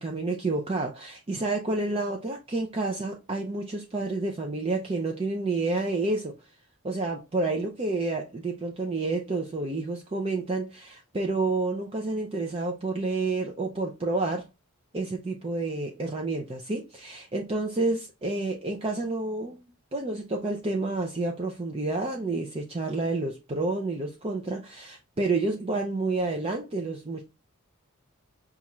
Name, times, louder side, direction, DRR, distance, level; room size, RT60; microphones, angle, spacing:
voice 1, 0.0-6.3 6.8-14.4 14.9-19.6 19.9-27.2, right 3 dB, 25° right, 0.5 m, -29 dB
5.5 x 2.4 x 3.0 m
head